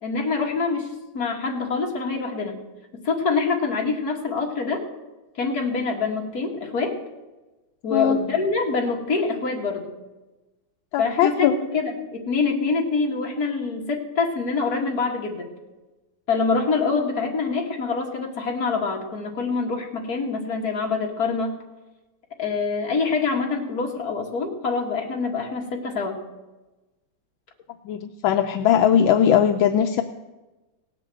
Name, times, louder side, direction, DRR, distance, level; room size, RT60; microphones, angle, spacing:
voice 1, 0.0-2.6 3.0-4.8 5.4-7.0 7.8-9.9 11.0-15.5 16.3-21.5 22.4-26.2, left 4 dB, 50° left, 1 dB, 2.3 m, -25 dB
voice 2, 10.9-11.5 27.8-30.0, left 9 dB, 80° left, 6 dB, 1.4 m, -19 dB
17.5 x 7.7 x 7.6 m, 1.1 s
omnidirectional pair, 2.2 m